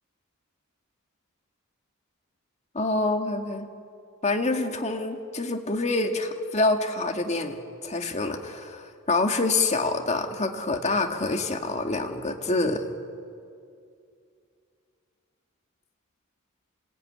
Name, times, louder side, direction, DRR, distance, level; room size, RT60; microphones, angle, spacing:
voice 1, 2.7-3.7 4.2-12.8, left 2 dB, 30° left, 4 dB, 2.0 m, -26 dB
27.0 x 19.0 x 9.9 m, 2.4 s
head